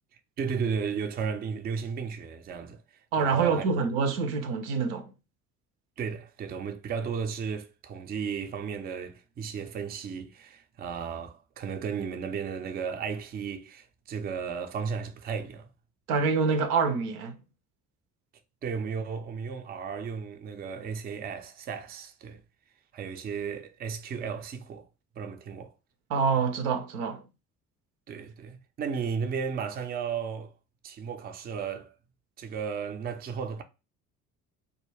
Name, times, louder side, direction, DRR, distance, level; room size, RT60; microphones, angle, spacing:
voice 1, 0.4-2.8 3.2-3.6 6.0-15.7 18.6-22.4 22.9-24.9 25.2-25.7 28.1-30.5 30.8-31.9 32.4-33.6, right 6 dB, 25° right, 0.4 m, -34 dB
voice 2, 3.1-5.1 16.1-17.4 26.1-27.2, right 5 dB, 80° right, 0.5 m, -26 dB
2.2 x 2.2 x 3.2 m
hypercardioid pair, 50°, 44 cm